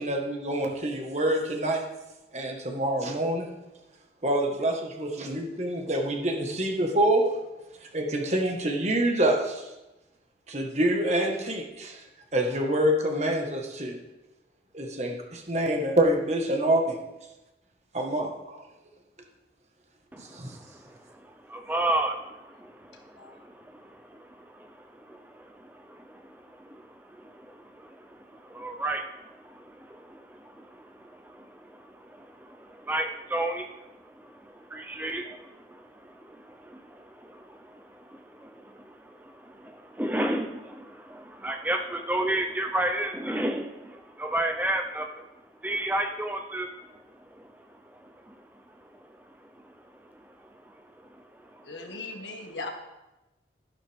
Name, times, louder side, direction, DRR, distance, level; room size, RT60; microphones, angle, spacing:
voice 1, 0.0-1.8 2.3-3.5 4.2-7.3 7.9-9.6 10.5-12.0 12.3-14.0 14.7-17.0 17.9-18.6 20.2-20.6, right 1 dB, 40° right, 2 dB, 1.6 m, -26 dB
voice 2, 20.1-22.2 22.8-23.4 23.7-45.2 45.6-48.8 49.1-49.2 49.5-49.7 50.0-52.0, right 1 dB, 10° right, 4 dB, 0.6 m, -34 dB
voice 3, 51.6-52.7, left 3 dB, 85° left, 2 dB, 1.9 m, -38 dB
12.5 x 11.0 x 3.6 m, 1.0 s
head